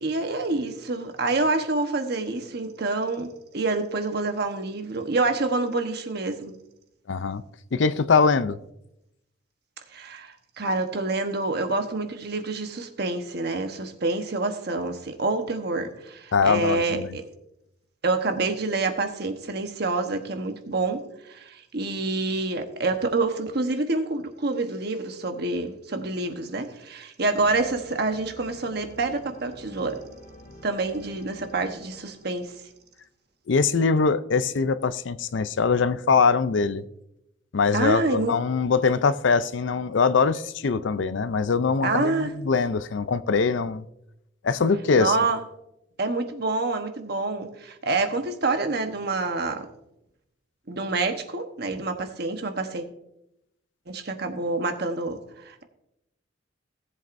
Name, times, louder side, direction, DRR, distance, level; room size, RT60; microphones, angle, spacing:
voice 1, 0.0-6.5 9.9-17.2 18.0-30.0 30.6-32.5 37.7-38.4 41.8-42.3 44.9-45.4 46.0-49.7 50.7-52.8 53.9-55.6, right 3 dB, 60° right, 1.1 m, -27 dB
voice 2, 7.1-7.4 7.7-8.6 16.3-17.1 33.5-36.8 37.5-43.8 44.4-45.2, left 5 dB, 75° left, 0.5 m, -22 dB
sound 1, 27.4-32.9, left 1 dB, 45° left, 1.4 m, -48 dB
17.5 x 7.7 x 2.6 m
head